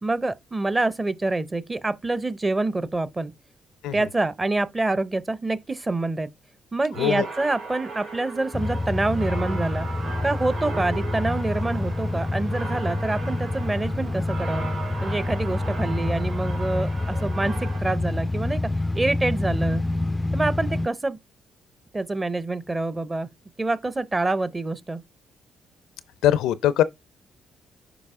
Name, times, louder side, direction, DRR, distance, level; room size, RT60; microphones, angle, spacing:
voice 1, 0.0-3.3 3.9-6.3 6.7-9.9 10.2-14.7 15.0-19.8 20.3-21.2 21.9-23.3 23.6-25.0, right 2 dB, 20° right, 0.6 m, -26 dB
sound 1, 6.9-17.8, right 4 dB, 75° right, 4.5 m, -37 dB
sound 2, 8.5-20.9, left 2 dB, 15° left, 0.3 m, -27 dB
voice 2, 26.2-26.8, left 12 dB, 90° left, 0.5 m, -21 dB
6.9 x 4.8 x 3.6 m
cardioid pair, 90°, 0 cm